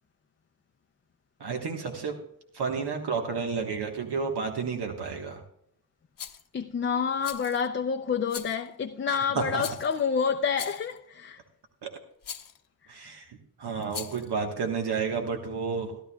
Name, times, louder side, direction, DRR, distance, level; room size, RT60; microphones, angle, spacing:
voice 1, 1.4-2.2 2.5-5.4 9.1-9.6 11.8-11.9 12.9-16.0, right 5 dB, 85° right, 1.4 m, -31 dB
Rattle, 6.2-6.5 7.2-7.7 8.3-8.7 9.6-10.0 10.5-11.0 12.2-12.6 13.8-14.3, left 8 dB, 55° left, 0.8 m, -40 dB
voice 2, 6.5-11.4, left 6 dB, 30° left, 0.5 m, -28 dB
16.5 x 12.0 x 2.3 m
wide cardioid pair, 165°, 39 cm